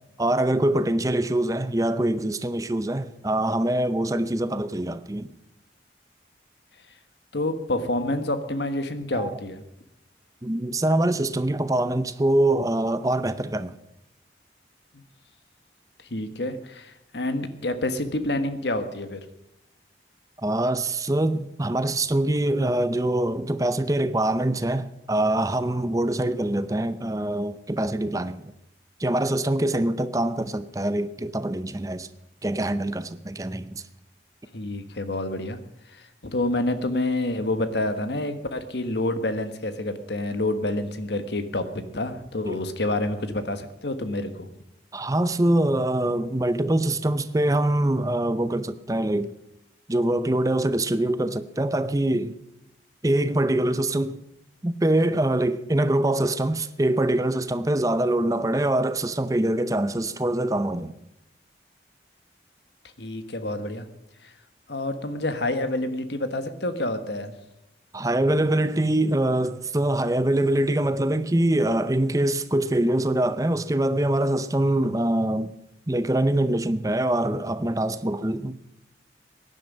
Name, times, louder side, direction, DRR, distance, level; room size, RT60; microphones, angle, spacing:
voice 1, 0.2-5.3 9.1-9.3 10.4-13.7 20.4-28.5 29.0-32.1 32.4-33.8 42.4-42.6 44.9-49.3 49.9-52.4 53.0-54.2 54.6-60.9 67.9-75.5 75.9-78.5, right 1 dB, 20° right, 0.6 m, -24 dB
voice 2, 7.3-9.6 14.9-15.0 16.0-19.2 34.5-35.6 35.9-44.5 63.0-63.9 64.2-64.3 64.7-67.3, left 1 dB, 75° left, 1.4 m, -28 dB
17.0 x 10.5 x 5.4 m
head